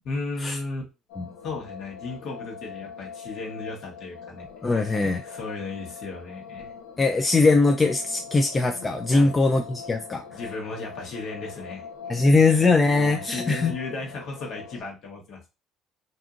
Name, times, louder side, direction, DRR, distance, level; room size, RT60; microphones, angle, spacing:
voice 1, 0.0-0.8 1.4-6.7 9.1-9.3 10.3-12.2 12.5-15.5, left 3 dB, 65° left, 1.1 m, -35 dB
sound 1, 1.1-14.8, left 6 dB, 85° left, 0.5 m, -42 dB
voice 2, 4.6-5.2 7.0-10.2 12.1-13.8, left 3 dB, 25° left, 0.3 m, -21 dB
2.6 x 2.6 x 2.4 m
supercardioid pair, 90°, 0 cm